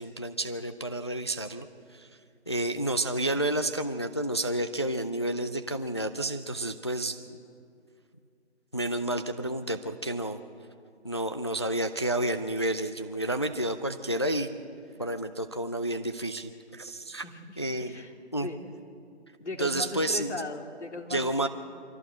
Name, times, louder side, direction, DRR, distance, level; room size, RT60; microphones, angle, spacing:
voice 1, 0.0-1.7 1.9-2.1 2.5-7.4 8.7-10.4 11.0-14.5 15.0-17.2 17.6-17.9 18.3-18.5 19.6-20.4 21.1-21.5, right 1 dB, 25° left, 9 dB, 0.4 m, -30 dB
voice 2, 17.2-18.1 18.4-18.7 19.4-21.5, left 3 dB, 85° left, 3 dB, 2.9 m, -38 dB
24.0 x 15.5 x 7.7 m, 2.3 s
figure-of-eight pair, 160°, 34 cm